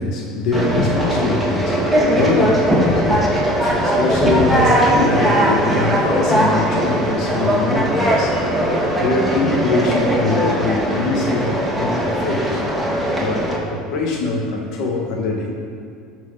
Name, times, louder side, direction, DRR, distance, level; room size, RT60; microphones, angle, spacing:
voice 1, 0.0-8.4 9.0-12.6 13.1-15.5, left 3 dB, 60° left, 0 dB, 1.4 m, -23 dB
Conversation, 0.5-13.6, equal, 5° right, 2.5 m, -19 dB
13.0 x 4.7 x 5.8 m, 2.4 s
hypercardioid pair, 80°, 0 cm